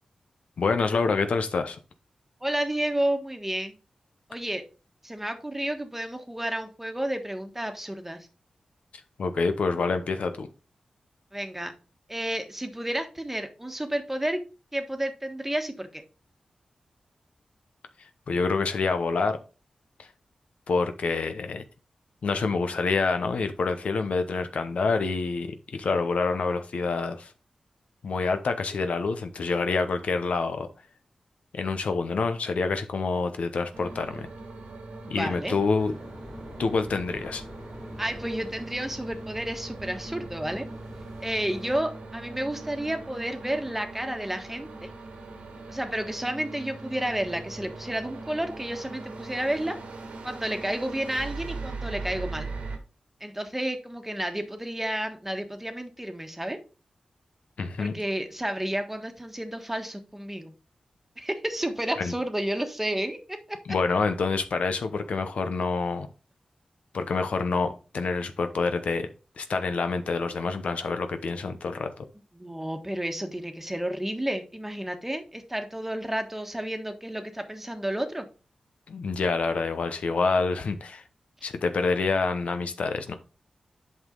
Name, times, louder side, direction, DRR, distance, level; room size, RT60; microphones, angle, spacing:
voice 1, 0.6-1.8 9.2-10.5 18.3-19.4 20.0-20.1 20.7-21.6 22.2-27.3 28.0-30.7 31.5-34.3 35.1-35.9 36.6-37.4 57.6-58.0 62.0-62.1 63.7-66.1 66.9-69.1 69.4-71.9 78.9-81.0 81.4-83.1, left 4 dB, 75° left, 0.8 m, -27 dB
voice 2, 2.4-3.7 4.3-4.6 5.0-8.3 11.3-11.7 12.1-14.4 14.7-16.0 35.1-35.5 38.0-40.6 41.2-44.9 45.7-49.8 50.2-52.5 53.2-56.6 57.8-60.5 61.2-63.6 72.3-78.2, right 1 dB, 10° right, 1.4 m, -31 dB
sound 1, 33.7-52.8, right 3 dB, 80° right, 1.6 m, -40 dB
sound 2, 35.8-41.8, left 1 dB, 30° left, 3.1 m, -46 dB
8.1 x 5.5 x 3.8 m
cardioid pair, 55°, 2 cm